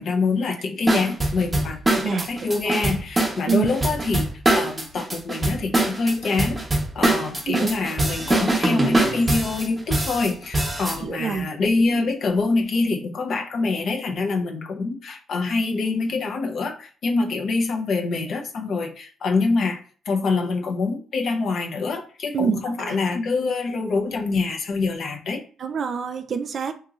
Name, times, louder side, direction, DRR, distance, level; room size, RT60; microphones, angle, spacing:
voice 1, 0.0-6.6 6.9-19.8 20.1-25.4, left 3 dB, 60° left, 3 dB, 0.6 m, -25 dB
sound 1, 0.9-11.0, right 2 dB, 20° right, 0.9 m, -23 dB
voice 2, 11.0-11.5 22.3-22.9 25.6-26.7, right 6 dB, 55° right, 8 dB, 0.4 m, -25 dB
2.9 x 2.8 x 2.4 m, 0.41 s
cardioid pair, 90°, 0 cm